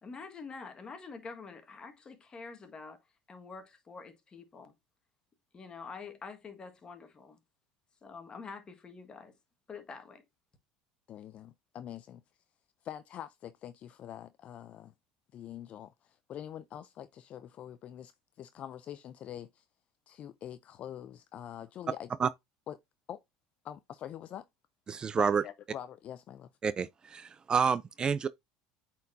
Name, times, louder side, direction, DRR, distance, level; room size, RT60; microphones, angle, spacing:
voice 1, 0.0-3.0 3.3-4.7 5.5-7.4 8.0-9.3 9.7-10.2, left 4 dB, 30° left, 1.5 m, -46 dB
voice 2, 11.1-12.2 12.8-14.9 15.3-18.1 18.4-19.6 20.1-22.1 22.7-22.8 23.1-23.2 23.6-24.5 25.1-26.5, left 10 dB, 45° left, 0.4 m, -44 dB
voice 3, 24.9-25.4 26.6-28.3, right 6 dB, 30° right, 0.3 m, -29 dB
8.2 x 4.4 x 2.6 m
supercardioid pair, 105°, 3 cm